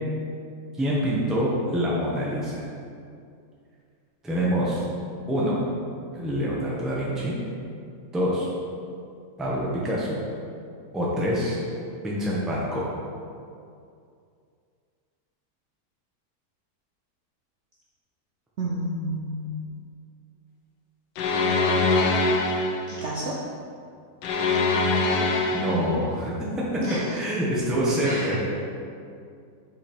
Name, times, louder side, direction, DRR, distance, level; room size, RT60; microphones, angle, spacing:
voice 1, 0.8-2.6 4.2-4.8 5.3-5.6 6.1-7.3 8.1-8.5 9.4-10.1 10.9-11.6 12.0-12.9 25.5-26.5 27.1-28.4, equal, ahead, -6 dB, 0.6 m, -26 dB
voice 2, 18.6-19.6 22.9-23.4 26.8-27.2 28.0-28.4, right 1 dB, 60° right, -5 dB, 0.8 m, -31 dB
sound 1, 21.2-22.9 24.2-26.0, left 3 dB, 90° left, 1.2 m, -23 dB
5.7 x 3.9 x 4.4 m, 2.4 s
omnidirectional pair, 1.8 m